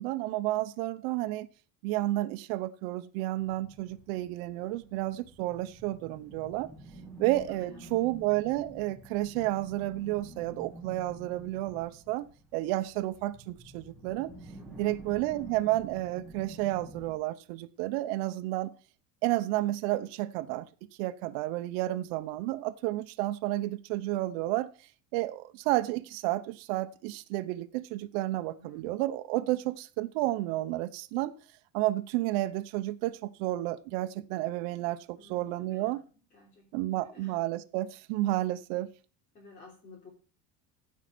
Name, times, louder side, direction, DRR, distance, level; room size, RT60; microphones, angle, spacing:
voice 1, 0.0-1.5 1.8-6.7 7.2-12.3 12.5-14.3 14.8-18.7 19.2-20.7 21.0-24.7 25.1-31.3 31.7-36.0 36.7-38.9, right 16 dB, 90° right, 0.8 m, -31 dB
sound 1, 3.4-17.1, right 2 dB, ahead, 2.3 m, -49 dB
voice 2, 7.5-8.0 14.5-15.1 28.6-28.9 35.2-37.4 39.3-40.1, left 2 dB, 30° left, 3.5 m, -54 dB
15.5 x 5.6 x 6.0 m
cardioid pair, 175°, 29 cm